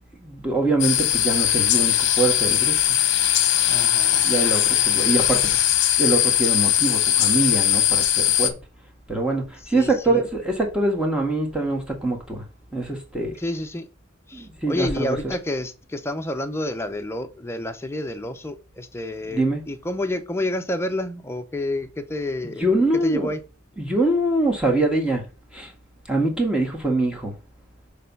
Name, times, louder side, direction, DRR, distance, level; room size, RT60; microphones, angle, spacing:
voice 1, 0.1-2.9 4.2-5.6 6.0-8.5 9.1-12.5 12.7-13.4 14.3-15.3 19.3-19.6 22.6-23.3 23.8-25.2 25.5-25.7 26.1-27.3, right 2 dB, 5° right, 1.7 m, -24 dB
sound 1, 0.8-8.5, left 11 dB, 60° left, 0.9 m, -20 dB
voice 2, 3.7-4.3 9.7-10.2 13.4-13.9 14.3-22.6 23.0-23.4, left 1 dB, 15° left, 0.7 m, -29 dB
6.6 x 3.4 x 5.3 m
head